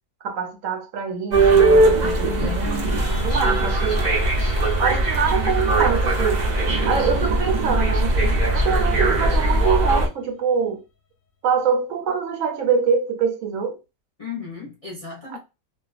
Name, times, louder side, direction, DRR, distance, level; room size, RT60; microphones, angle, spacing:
voice 1, 0.2-4.0 4.8-6.4 6.9-8.1 8.5-10.8 11.4-13.8 15.3-15.4, right 6 dB, 70° right, 0.9 m, -24 dB
sound 1, 1.3-10.1, right 2 dB, 55° right, 0.5 m, -20 dB
sound 2, 2.2-10.3, left 3 dB, 60° left, 0.8 m, -39 dB
voice 2, 2.4-3.0 14.2-15.4, left 5 dB, 45° left, 0.4 m, -35 dB
2.5 x 2.2 x 2.4 m
omnidirectional pair, 1.5 m